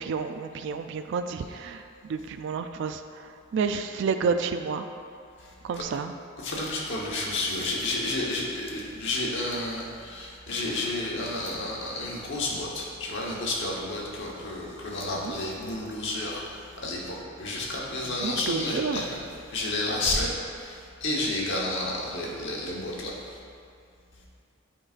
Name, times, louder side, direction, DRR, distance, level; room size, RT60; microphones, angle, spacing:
voice 1, 0.0-1.8 2.1-4.9 5.6-6.1 15.1-15.3 18.1-19.1, right 5 dB, 60° right, 8 dB, 0.3 m, -30 dB
voice 2, 6.4-19.2 19.5-20.3 20.6-23.2, left 2 dB, 60° left, -3 dB, 1.1 m, -31 dB
8.7 x 4.7 x 2.5 m, 2.4 s
head